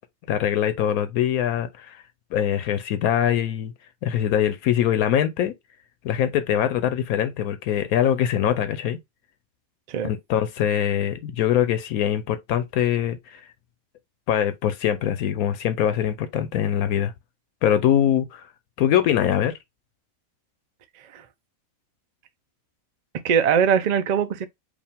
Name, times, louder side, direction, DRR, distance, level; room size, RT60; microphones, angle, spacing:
voice 1, 0.3-2.0 2.3-3.7 4.0-5.5 6.0-9.0 10.0-13.4 14.3-17.1 17.6-18.5 18.8-19.6, left 10 dB, 80° left, 1.1 m, -23 dB
voice 2, 23.2-24.5, right 7 dB, 75° right, 0.3 m, -21 dB
5.1 x 2.4 x 3.4 m
omnidirectional pair, 1.5 m